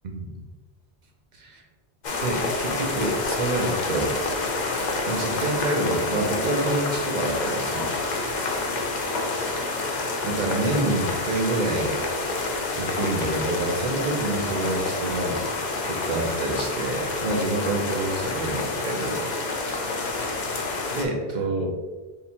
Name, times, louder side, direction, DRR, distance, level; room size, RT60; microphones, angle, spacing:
voice 1, 0.0-0.4 1.3-1.6 2.2-4.2 5.1-8.3 10.2-12.0 12.7-15.4 15.8-19.2 20.9-21.7, right 2 dB, 50° right, 1 dB, 0.7 m, -27 dB
sound 1, 2.0-21.0, left 3 dB, 50° left, 0.6 m, -28 dB
3.5 x 2.8 x 4.2 m, 1.3 s
omnidirectional pair, 1.1 m